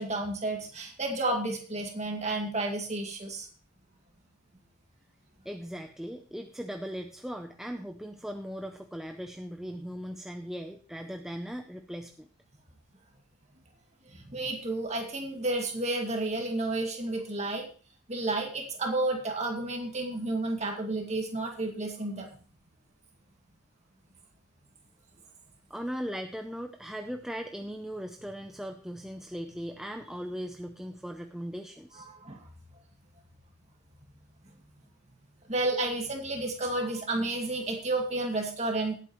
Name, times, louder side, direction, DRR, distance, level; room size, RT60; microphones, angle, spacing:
voice 1, 0.0-3.5 14.1-17.7 18.1-22.3 31.9-32.4 35.5-38.9, right 2 dB, 30° right, 1 dB, 2.2 m, -31 dB
voice 2, 5.4-12.3 25.7-32.1, equal, ahead, 4 dB, 0.5 m, -38 dB
18.0 x 8.4 x 3.1 m, 0.41 s
head